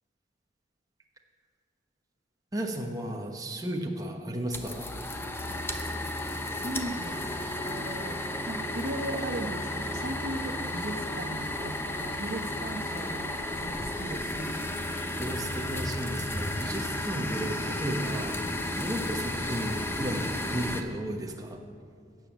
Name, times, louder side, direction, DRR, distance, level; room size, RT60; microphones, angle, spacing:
voice 1, 2.5-4.9 15.2-21.6, right 1 dB, 20° right, 2 dB, 1.2 m, -34 dB
sound 1, 4.5-20.8, left 1 dB, 15° left, 0.8 m, -33 dB
voice 2, 6.5-8.2 8.5-14.6, right 1 dB, 55° right, 4 dB, 1.0 m, -37 dB
16.5 x 7.1 x 7.3 m, 2.3 s
head